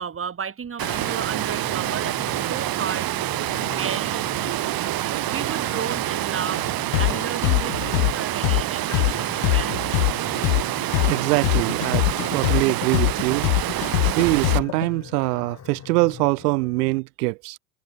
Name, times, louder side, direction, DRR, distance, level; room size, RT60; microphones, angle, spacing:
voice 1, 0.0-4.6 5.3-6.7 7.0-9.8, right 7 dB, 25° right, 4.2 m, -33 dB
sound 1, 0.8-17.0, left 8 dB, 35° left, 5.5 m, -41 dB
Water, 0.8-14.6, right 15 dB, 50° right, 1.6 m, -27 dB
sound 2, 6.9-14.9, left 40 dB or more, 70° left, 1.0 m, -22 dB
voice 2, 11.1-12.1 12.3-13.5 14.0-17.6, right 24 dB, 80° right, 1.2 m, -23 dB
supercardioid pair, 100°, 47 cm